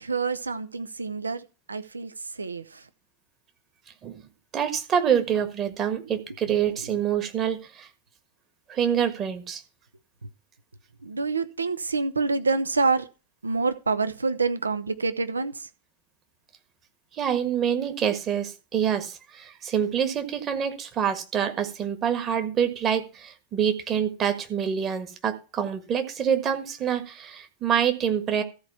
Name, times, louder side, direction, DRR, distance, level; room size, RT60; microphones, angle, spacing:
voice 1, 0.0-2.9 6.8-6.9 10.2-10.3 11.0-13.1 13.4-15.7, right 4 dB, 75° right, 0.7 m, -27 dB
voice 2, 4.5-7.9 8.7-9.6 17.1-28.4, right 8 dB, 30° right, 1.6 m, -26 dB
13.5 x 4.7 x 5.7 m
figure-of-eight pair, 90°, 0 cm